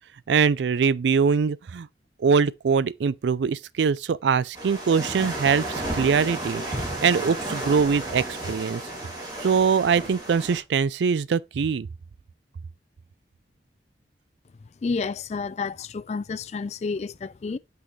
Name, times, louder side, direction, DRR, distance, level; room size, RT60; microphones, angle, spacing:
voice 1, 0.3-1.9 2.2-6.6 7.0-8.8 9.4-11.9, right 6 dB, 85° right, 0.4 m, -22 dB
sound 1, 4.5-10.6, right 1 dB, 25° right, 2.5 m, -33 dB
sound 2, 6.6-7.7, equal, 55° right, 2.6 m, -36 dB
voice 2, 14.8-17.6, left 4 dB, 40° left, 0.3 m, -30 dB
6.3 x 5.6 x 3.1 m
head